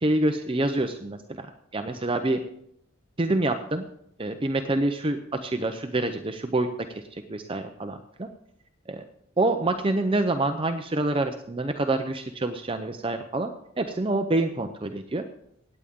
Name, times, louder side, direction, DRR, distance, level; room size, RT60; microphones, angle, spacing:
voice 1, 0.0-2.4 3.2-3.9 4.2-8.3 8.9-9.0 9.4-13.5 13.8-15.2, right 2 dB, 25° right, 6 dB, 0.6 m, -27 dB
17.0 x 9.2 x 3.7 m, 0.73 s
head